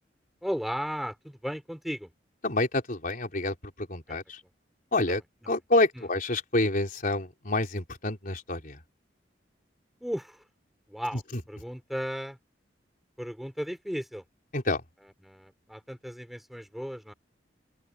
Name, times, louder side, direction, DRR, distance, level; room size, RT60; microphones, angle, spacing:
voice 1, 0.4-2.1 4.1-4.2 5.0-5.1 5.4-5.5 5.9-6.1 10.0-10.4 10.9-12.4 13.2-14.2 15.2-17.1, equal, ahead, 5.2 m, -35 dB
voice 2, 2.4-3.5 3.9-4.4 4.9-5.2 5.5-8.8 14.5-14.8, left 2 dB, 50° left, 4.3 m, -27 dB
open air
head